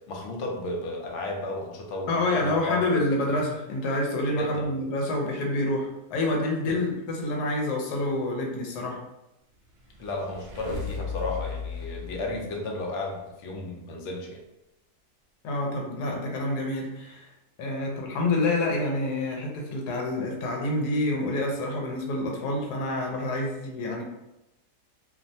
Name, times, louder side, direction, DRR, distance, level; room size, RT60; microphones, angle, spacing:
voice 1, 0.0-3.0 4.4-4.7 6.7-6.9 10.0-14.4, left 2 dB, 65° left, 0 dB, 0.7 m, -33 dB
voice 2, 2.1-9.0 15.4-17.3 17.6-24.0, left 2 dB, 85° left, 0 dB, 1.2 m, -27 dB
sound 1, 9.6-13.2, left 5 dB, 70° right, 1.1 m, -36 dB
2.8 x 2.1 x 2.6 m, 0.91 s
omnidirectional pair, 1.7 m